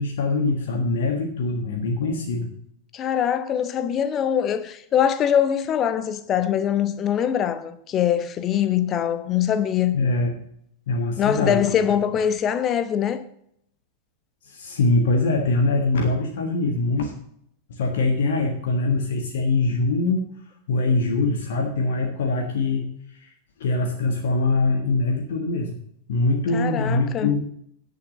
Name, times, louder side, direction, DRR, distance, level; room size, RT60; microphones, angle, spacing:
voice 1, 0.0-2.5 9.9-10.3 10.9-11.7 14.4-17.1 17.8-20.3 20.7-22.9 23.2-23.3 23.6-25.7 26.1-27.4, left 3 dB, 60° left, 1.4 m, -23 dB
voice 2, 2.9-10.0 11.2-13.2 26.5-27.3, left 9 dB, 30° left, 1.0 m, -23 dB
10.0 x 6.7 x 6.4 m
figure-of-eight pair, 90°, 0 cm